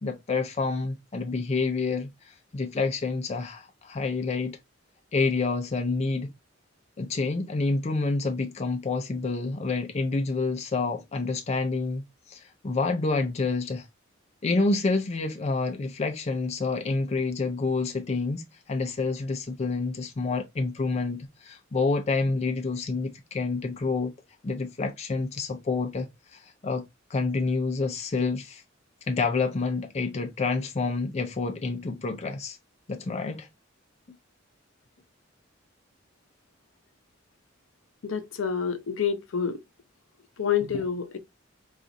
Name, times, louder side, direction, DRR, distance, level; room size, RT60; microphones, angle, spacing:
voice 1, 0.0-4.6 5.1-6.3 7.0-12.0 12.3-13.9 14.4-24.1 24.4-26.8 27.1-28.6 29.1-32.6 32.9-33.5, left 3 dB, 30° left, 0.4 m, -28 dB
voice 2, 38.0-39.6 40.4-41.2, left 7 dB, 80° left, 0.6 m, -28 dB
3.9 x 2.4 x 2.5 m
head